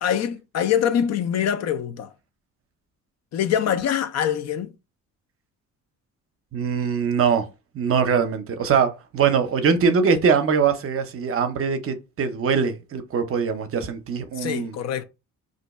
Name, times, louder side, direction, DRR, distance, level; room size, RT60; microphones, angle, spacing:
voice 1, 0.0-2.1 3.3-4.7 14.4-15.0, left 9 dB, 60° left, 0.5 m, -24 dB
voice 2, 6.5-7.5 7.7-14.7, right 6 dB, 45° right, 0.6 m, -22 dB
2.6 x 2.2 x 4.0 m
cardioid pair, 90°, 30 cm